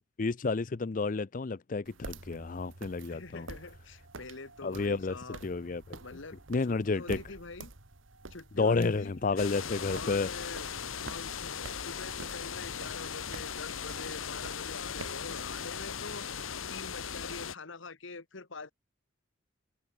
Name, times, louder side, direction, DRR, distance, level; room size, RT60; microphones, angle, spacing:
voice 1, 0.2-3.5 4.6-5.2 5.4-6.0 6.5-7.2 8.6-10.3, left 3 dB, 40° left, 0.5 m, -30 dB
sound 1, 1.9-17.3, right 3 dB, 75° right, 1.6 m, -49 dB
sound 2, 2.6-14.5, right 1 dB, 60° right, 4.5 m, -62 dB
voice 2, 3.1-5.4 6.0-7.7 8.3-18.7, left 3 dB, 70° left, 1.5 m, -46 dB
sound 3, 9.4-17.6, left 7 dB, 90° left, 1.3 m, -38 dB
head